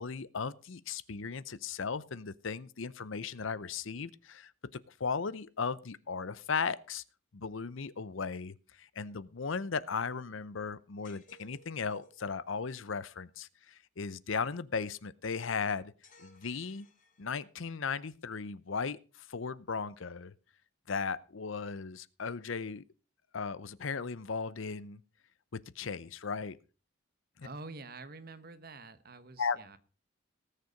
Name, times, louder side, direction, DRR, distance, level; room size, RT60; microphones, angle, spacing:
voice 1, 0.0-7.0 7.3-15.9 16.2-16.9 17.2-20.3 20.9-22.8 23.3-25.0 25.5-26.6 27.4-27.5 29.4-29.6, left 5 dB, 70° left, 0.7 m, -36 dB
sound 1, 11.0-12.2 16.0-17.6, left 2 dB, 40° left, 3.0 m, -61 dB
voice 2, 27.4-29.8, right 3 dB, 45° right, 1.1 m, -47 dB
19.0 x 6.8 x 5.0 m
head